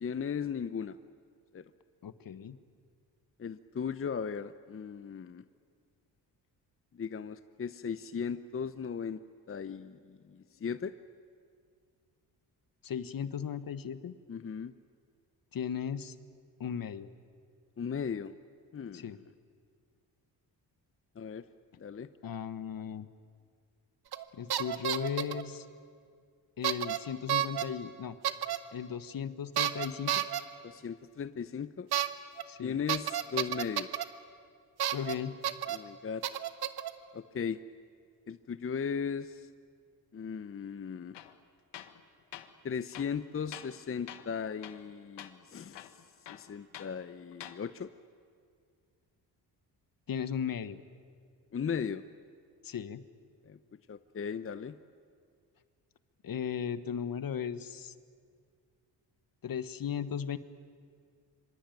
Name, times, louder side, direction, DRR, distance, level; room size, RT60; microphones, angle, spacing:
voice 1, 0.0-1.0 1.5-1.6 3.4-5.4 6.9-9.2 9.5-10.9 14.3-14.7 17.8-18.3 18.7-19.1 21.2-21.4 21.8-22.1 30.6-31.9 32.6-33.9 35.7-36.2 37.1-37.6 38.3-39.5 40.1-41.2 42.6-46.0 46.3-47.9 51.5-52.0 53.5-53.6 53.9-54.8, left 6 dB, 30° left, 12 dB, 0.8 m, -37 dB
voice 2, 2.0-2.6 12.8-14.2 15.5-16.1 16.6-17.1 18.9-19.2 22.2-23.1 24.3-25.7 26.6-28.2 28.7-30.2 32.5-32.8 34.9-35.3 50.1-50.8 52.6-53.0 56.2-57.9 59.4-60.4, left 8 dB, 55° left, 13 dB, 1.3 m, -36 dB
sound 1, 24.1-24.2 24.5-25.4 26.6-27.0 27.3-27.6 28.2-28.6 29.6-30.4 31.9-32.1 32.4-32.5 32.9-34.0 34.8-35.1 35.4-35.8 36.2-36.9, right 11 dB, 70° right, 1.4 m, -30 dB
Tools, 41.1-41.4 41.7-42.0 42.3-42.5 42.9-43.8 44.1-44.3 44.6-44.9 45.2-45.3 45.7-46.9 47.3-47.6, left 11 dB, 80° left, 1.5 m, -47 dB
26.0 x 24.0 x 9.2 m, 2.1 s
cardioid pair, 80°, 41 cm